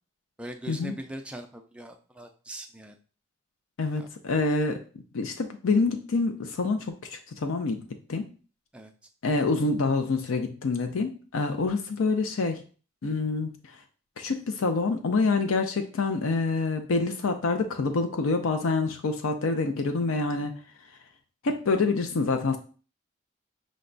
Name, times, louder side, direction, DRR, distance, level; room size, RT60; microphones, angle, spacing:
voice 1, 0.4-3.0 4.0-4.1 8.7-8.9, right 1 dB, 5° right, 5 dB, 0.3 m, -41 dB
voice 2, 3.8-4.8 5.1-8.3 9.2-12.6 13.0-13.5 14.2-20.5 21.4-22.6, left 3 dB, 90° left, 6 dB, 0.5 m, -26 dB
5.1 x 2.2 x 3.8 m, 0.38 s
head